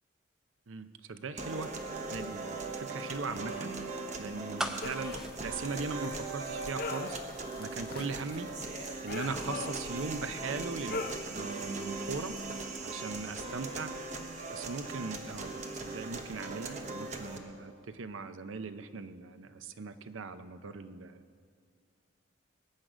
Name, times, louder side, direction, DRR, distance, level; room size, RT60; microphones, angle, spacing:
voice 1, 0.7-1.7 2.1-3.7 4.2-7.2 7.6-8.5 8.8-12.4 12.8-13.9 14.5-15.5 15.8-21.2, right 4 dB, 85° right, 11 dB, 0.6 m, -39 dB
sound 1, 1.4-17.4, right 3 dB, 35° right, 1.0 m, -39 dB
sound 2, 4.6-6.6 6.9-7.0, equal, 5° right, 0.5 m, -38 dB
sound 3, 4.8-12.6, left 4 dB, 45° left, 0.6 m, -43 dB
21.0 x 9.2 x 5.0 m, 2.1 s
head